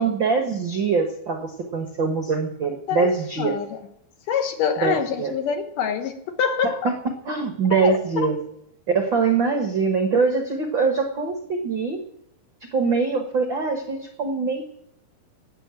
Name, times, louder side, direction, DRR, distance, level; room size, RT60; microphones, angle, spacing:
voice 1, 0.0-3.5 4.8-5.3 7.2-8.4 8.9-12.0 12.7-14.6, right 4 dB, 75° right, 4 dB, 1.0 m, -23 dB
voice 2, 2.9-3.8 4.3-6.1 6.4-6.9 7.7-8.3, left 7 dB, 65° left, 5 dB, 2.6 m, -25 dB
17.0 x 6.7 x 9.0 m, 0.76 s
omnidirectional pair, 4.5 m